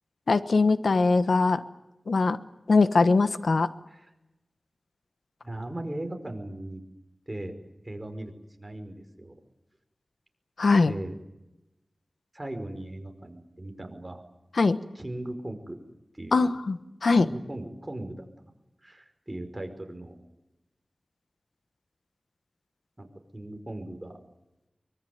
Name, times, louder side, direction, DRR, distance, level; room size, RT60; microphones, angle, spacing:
voice 1, 0.3-1.6 2.1-2.4 2.7-3.7 10.6-10.9 14.6-14.8 16.3-17.3, left 3 dB, 85° left, 12 dB, 1.2 m, -21 dB
voice 2, 5.4-6.8 7.3-7.6 7.8-8.3 8.6-9.3 10.9-11.1 12.3-14.2 14.9-15.8 16.1-16.5 17.2-18.3 18.8-20.1 23.0-23.1 23.3-24.2, right 1 dB, 20° right, 5 dB, 5.0 m, -38 dB
24.0 x 22.5 x 9.5 m, 0.94 s
wide cardioid pair, 60°, 0 cm